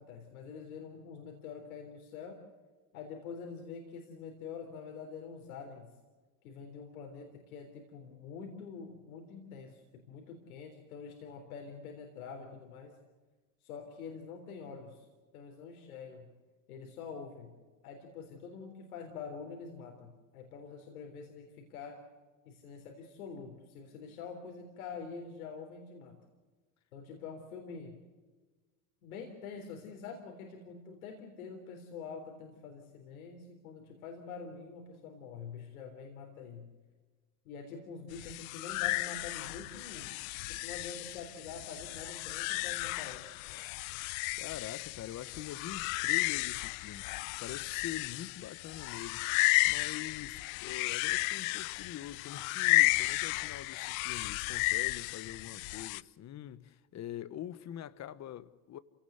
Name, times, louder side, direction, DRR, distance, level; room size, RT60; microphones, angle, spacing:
voice 1, 0.0-2.4 2.9-5.9 6.4-12.9 13.6-15.1 15.3-16.3 16.7-17.5 17.8-22.0 22.5-26.2 26.9-28.0 29.0-36.7 37.5-40.1 40.6-43.3, left 5 dB, 90° left, 3.8 m, -46 dB
sound 1, 38.1-56.0, left 24 dB, 70° left, 0.6 m, -33 dB
voice 2, 44.4-49.3 49.7-58.8, left 11 dB, 40° left, 1.2 m, -44 dB
27.5 x 17.5 x 8.0 m
supercardioid pair, 100°, 42 cm